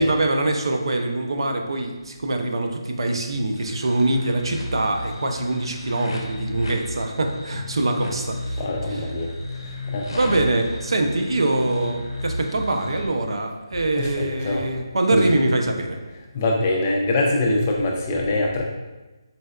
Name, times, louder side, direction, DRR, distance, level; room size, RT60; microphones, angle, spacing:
voice 1, 0.0-8.6 8.9-9.0 10.1-16.0, right 2 dB, 75° right, 4 dB, 0.4 m, -24 dB
sound 1, 3.6-13.1, left 2 dB, 70° left, 0.6 m, -33 dB
voice 2, 8.6-10.4 13.9-14.6 15.1-15.3 16.3-18.6, left 2 dB, 25° left, -1 dB, 0.4 m, -24 dB
4.0 x 2.1 x 2.3 m, 1.2 s
hypercardioid pair, 170°, 3 cm